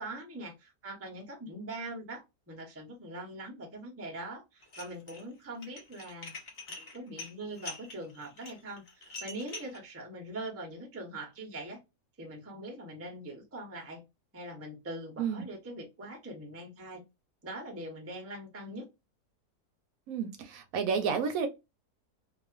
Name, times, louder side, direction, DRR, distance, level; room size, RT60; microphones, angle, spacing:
voice 1, 0.0-6.4 6.7-11.8 12.2-14.0 14.3-17.0 17.4-18.9, right 1 dB, 20° right, 0.4 m, -42 dB
Dishes pots and pans, 4.6-5.2 5.5-9.8, left 3 dB, 50° left, 0.6 m, -44 dB
voice 2, 20.1-21.5, right 6 dB, 70° right, 0.9 m, -31 dB
2.4 x 2.4 x 2.2 m
omnidirectional pair, 1.6 m